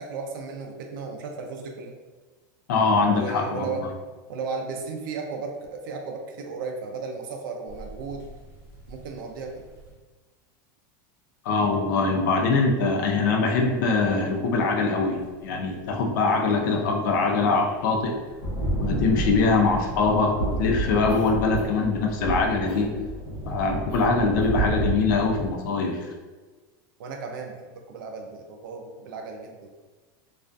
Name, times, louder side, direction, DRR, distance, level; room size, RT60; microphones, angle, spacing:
voice 1, 0.0-1.9 3.0-3.8 4.3-8.3 8.9-9.6 27.0-29.7, right 4 dB, 80° right, 2 dB, 0.4 m, -35 dB
voice 2, 2.7-3.8 11.4-18.2 18.7-22.9 23.5-26.1, left 4 dB, 65° left, 2 dB, 0.5 m, -23 dB
sound 1, 7.7-9.9 13.5-13.9 14.4-14.7 15.9-16.0 16.8-16.9 17.1-17.4 18.0-25.5, right 2 dB, 45° left, 0.9 m, -31 dB
Cough, 21.1-21.9 22.7-22.9 23.9-24.1 24.4-24.6, right 3 dB, 30° right, 0.5 m, -42 dB
2.4 x 2.2 x 2.5 m, 1.3 s
supercardioid pair, 170°, 11 cm